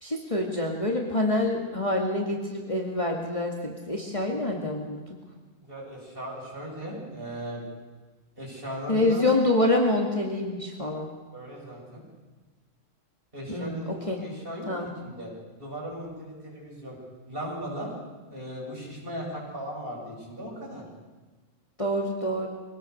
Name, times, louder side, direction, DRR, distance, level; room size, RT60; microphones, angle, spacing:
voice 1, 0.0-5.2 8.9-11.1 13.5-13.8 14.1-14.2 14.7-14.9 21.8-22.5, left 1 dB, 25° left, -1 dB, 2.3 m, -26 dB
voice 2, 5.6-7.6 8.4-9.3 11.3-12.0 13.3-13.9 14.2-15.3 15.6-17.0 17.3-17.9 18.3-20.9, equal, 40° right, -4 dB, 7.7 m, -37 dB
24.5 x 18.0 x 6.8 m, 1.3 s
omnidirectional pair, 1.4 m